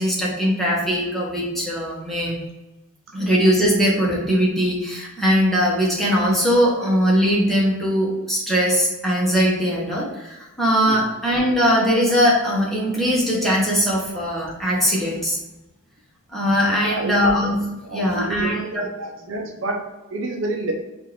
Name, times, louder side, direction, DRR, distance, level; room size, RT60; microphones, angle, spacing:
voice 1, 0.0-2.4 3.1-15.4 16.3-18.9, equal, ahead, -5 dB, 1.2 m, -20 dB
voice 2, 16.8-17.3 17.8-19.8 20.1-20.7, right 2 dB, 65° right, 1 dB, 0.7 m, -29 dB
4.9 x 2.6 x 4.1 m, 1.0 s
head